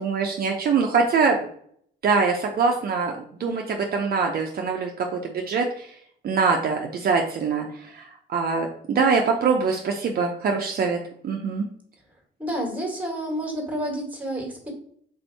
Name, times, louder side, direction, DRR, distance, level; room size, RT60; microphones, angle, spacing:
voice 1, 0.0-1.5 2.0-5.9 6.2-11.0 11.2-11.7, right 5 dB, 50° right, 2 dB, 0.5 m, -23 dB
voice 2, 12.4-14.7, right 1 dB, 5° right, 0 dB, 1.5 m, -29 dB
3.4 x 2.6 x 4.5 m, 0.63 s
cardioid pair, 90°, 20 cm